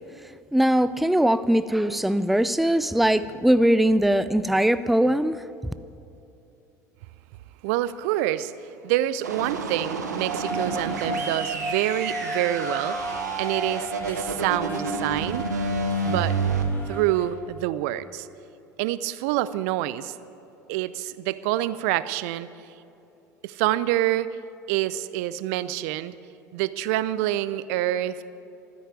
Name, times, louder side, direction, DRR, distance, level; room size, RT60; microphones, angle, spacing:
voice 1, 0.5-5.4, right 1 dB, ahead, 0.4 m, -21 dB
voice 2, 7.6-13.0 13.4-15.5 16.0-16.4 16.9-18.3 18.8-20.1 20.7-22.5 23.4-24.4 24.7-26.2 26.5-28.2, right 14 dB, 60° right, 0.5 m, -27 dB
sound 1, 9.2-16.6, right 3 dB, 80° right, 1.2 m, -29 dB
sound 2, 10.1-17.3, right 1 dB, 25° left, 2.9 m, -34 dB
13.5 x 10.0 x 9.1 m
figure-of-eight pair, 70°, 9 cm